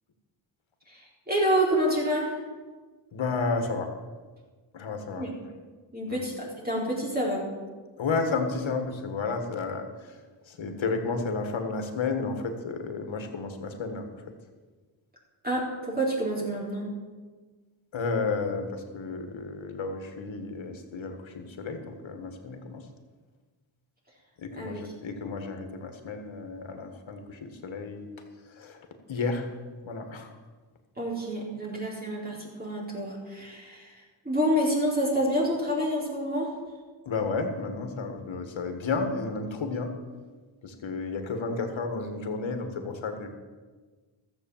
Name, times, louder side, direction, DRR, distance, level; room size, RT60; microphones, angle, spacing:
voice 1, 0.9-2.3 5.2-5.3 5.9-7.5 15.4-16.9 24.6-24.8 31.0-36.5, equal, 20° right, -4 dB, 4.2 m, -28 dB
voice 2, 3.1-3.9 4.7-5.3 6.1-6.2 8.0-10.1 10.5-14.1 17.9-22.9 24.4-28.1 28.5-28.8 29.1-29.5 29.8-30.3 37.1-39.9 40.6-43.3, left 4 dB, 75° left, 6 dB, 1.8 m, -32 dB
13.5 x 7.9 x 7.3 m, 1.4 s
cardioid pair, 65°, 47 cm